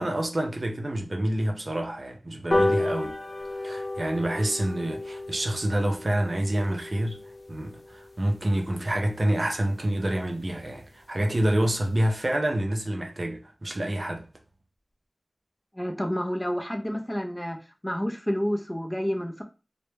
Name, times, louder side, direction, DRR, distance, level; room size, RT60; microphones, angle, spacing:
voice 1, 0.0-3.2 3.4-7.2 7.5-14.3, right 1 dB, 55° right, 0.5 m, -27 dB
sound 1, 2.5-9.3 9.7-9.8 10.1-10.2 10.5-10.6 10.9-11.0 11.2-11.5 11.9-12.0, left 2 dB, 65° left, 0.7 m, -32 dB
voice 2, 15.7-17.6 17.8-19.4, equal, 10° left, 0.4 m, -29 dB
2.1 x 2.0 x 3.1 m
wide cardioid pair, 40°, 0 cm